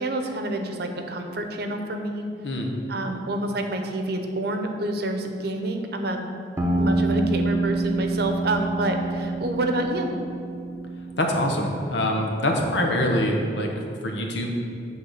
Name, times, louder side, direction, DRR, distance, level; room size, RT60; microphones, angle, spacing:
voice 1, 0.0-2.3 2.9-6.2 6.7-10.1, right 1 dB, 60° right, 4 dB, 0.7 m, -28 dB
sound 1, 6.6-11.2, right 2 dB, 15° right, 1.0 m, -27 dB
voice 2, 11.2-13.7 14.0-14.5, left 1 dB, 80° left, 1 dB, 1.0 m, -24 dB
8.5 x 3.6 x 6.5 m, 2.4 s
head